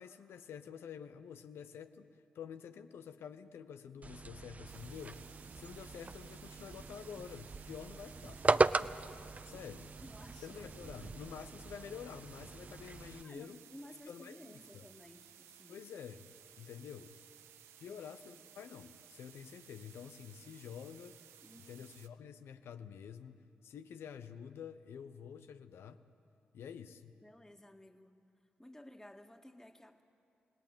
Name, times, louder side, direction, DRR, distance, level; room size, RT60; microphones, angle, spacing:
voice 1, 0.0-5.2 5.5-8.4 9.4-9.9 10.4-13.6 14.1-14.8 15.7-16.3 16.6-17.1 17.8-21.2 21.7-23.4 23.6-26.0 26.5-27.1, left 7 dB, 80° left, 10 dB, 1.0 m, -49 dB
sound 1, 4.0-13.2, right 3 dB, 35° right, 0.6 m, -37 dB
sound 2, 4.7-22.1, right 10 dB, 85° right, 0.7 m, -59 dB
voice 2, 10.0-10.6 10.9-11.3 13.2-15.9 17.9-18.1 21.4-21.9 27.1-28.2 28.6-30.0, left 1 dB, 15° left, 5 dB, 2.1 m, -55 dB
27.5 x 18.0 x 9.2 m, 2.4 s
supercardioid pair, 40°, 4 cm